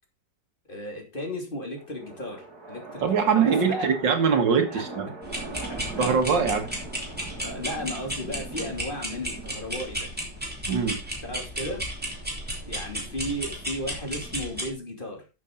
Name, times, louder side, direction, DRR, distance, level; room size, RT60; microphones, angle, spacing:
voice 1, 0.7-3.9 4.6-4.8 5.7-6.1 7.4-10.1 11.2-11.8 12.6-15.3, left 1 dB, 30° left, 3.0 m, -35 dB
sound 1, 1.8-14.7, right 3 dB, 60° right, 3.0 m, -42 dB
voice 2, 3.0-5.1 6.0-6.7 10.7-11.0, right 6 dB, 85° right, 2.4 m, -22 dB
sound 2, 5.2-14.7, equal, 5° right, 3.1 m, -34 dB
12.0 x 7.4 x 3.9 m
omnidirectional pair, 1.9 m